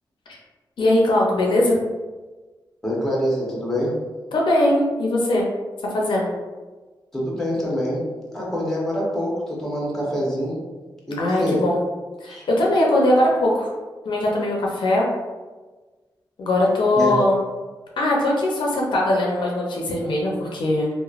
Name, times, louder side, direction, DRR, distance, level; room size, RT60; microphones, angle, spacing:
voice 1, 0.8-1.8 4.3-5.4 5.9-6.3 11.2-11.8 12.2-13.7 14.0-15.1 16.4-17.4 18.0-20.9, left 1 dB, 75° left, -3 dB, 0.6 m, -20 dB
voice 2, 2.8-4.0 7.1-8.1 8.3-10.7 11.1-11.6 12.2-12.4 16.9-17.2, equal, 5° left, -5 dB, 0.8 m, -25 dB
3.0 x 2.1 x 2.4 m, 1.3 s
wide cardioid pair, 100°, 8 cm